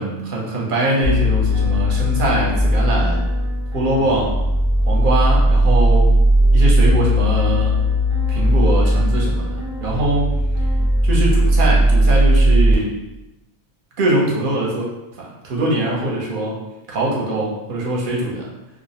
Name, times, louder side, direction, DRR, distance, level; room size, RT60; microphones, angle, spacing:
voice 1, 0.0-3.2 3.7-4.3 4.9-6.1 6.5-7.8 8.3-9.5 9.8-10.3 11.0-13.0 14.0-14.9 15.1-16.6 16.9-18.5, right 2 dB, 55° right, -3 dB, 0.8 m, -22 dB
sound 1, 1.0-12.7, equal, 35° right, 0.5 m, -17 dB
2.4 x 2.0 x 2.8 m, 0.95 s
omnidirectional pair, 1.1 m